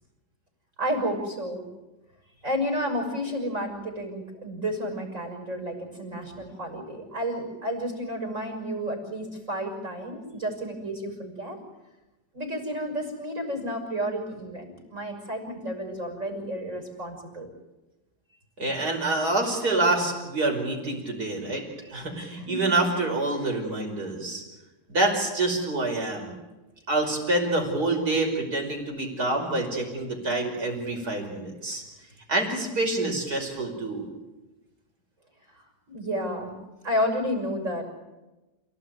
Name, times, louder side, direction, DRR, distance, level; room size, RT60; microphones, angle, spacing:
voice 1, 0.8-1.6 2.4-11.6 12.3-17.5 22.4-22.6 35.9-36.6 36.8-37.8, equal, 45° right, 3 dB, 6.4 m, -31 dB
voice 2, 18.6-24.4 24.9-26.3 26.9-31.8 32.3-34.1, right 2 dB, 60° right, 2 dB, 6.0 m, -27 dB
29.0 x 18.0 x 9.4 m, 1.1 s
omnidirectional pair, 1.8 m